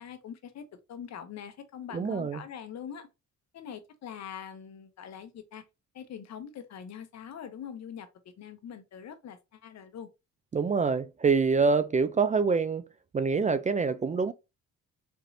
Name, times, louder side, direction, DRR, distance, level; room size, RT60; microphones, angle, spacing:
voice 1, 0.0-3.1 3.5-5.6 5.9-10.1, left 8 dB, 60° left, 0.9 m, -43 dB
voice 2, 1.9-2.4 10.5-12.8 13.1-14.3, right 5 dB, 25° right, 0.4 m, -25 dB
4.4 x 3.0 x 2.6 m
cardioid pair, 90°, 30 cm